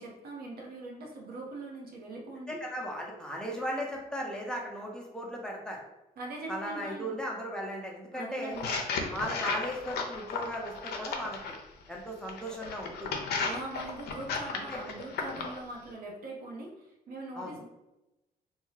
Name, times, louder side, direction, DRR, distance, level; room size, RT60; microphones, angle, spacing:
voice 1, 0.0-2.6 6.2-7.1 8.1-8.7 13.4-17.6, right 2 dB, 65° right, 0 dB, 0.8 m, -41 dB
voice 2, 2.5-5.8 6.5-8.6 9.1-11.5 11.9-13.1 14.5-14.8 17.3-17.6, equal, 5° left, -1 dB, 0.8 m, -37 dB
sound 1, 8.5-11.6 12.3-15.6, left 4 dB, 75° left, 0.5 m, -34 dB
2.8 x 2.2 x 3.1 m, 0.96 s
cardioid pair, 80°, 17 cm